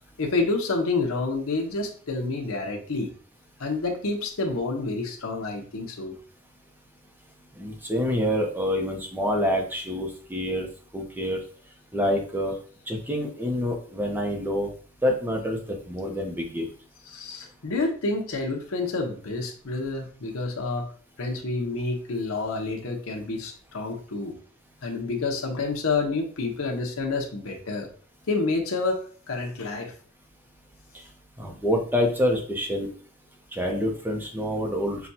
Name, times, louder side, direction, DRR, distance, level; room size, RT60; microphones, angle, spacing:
voice 1, 0.2-3.1 3.6-6.1 17.1-20.9 21.2-24.4 24.8-27.9 28.3-29.9, left 3 dB, 70° left, 2 dB, 0.8 m, -28 dB
voice 2, 7.6-10.7 10.9-11.4 11.9-12.5 12.9-14.7 15.0-15.6 15.9-16.7 31.4-32.9 33.5-35.1, equal, 10° right, 1 dB, 0.7 m, -27 dB
5.9 x 2.3 x 2.7 m, 0.43 s
head